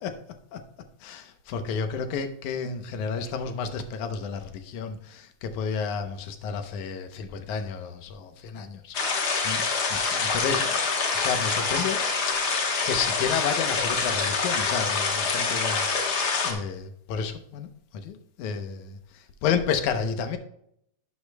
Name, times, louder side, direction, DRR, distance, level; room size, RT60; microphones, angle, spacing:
voice 1, 1.0-9.6 9.9-10.8 11.1-12.0 12.8-17.7 17.9-20.4, left 6 dB, 75° left, 2.3 m, -31 dB
sound 1, 8.9-16.5, left 4 dB, 60° left, 1.0 m, -26 dB
11.0 x 8.4 x 2.2 m
omnidirectional pair, 3.5 m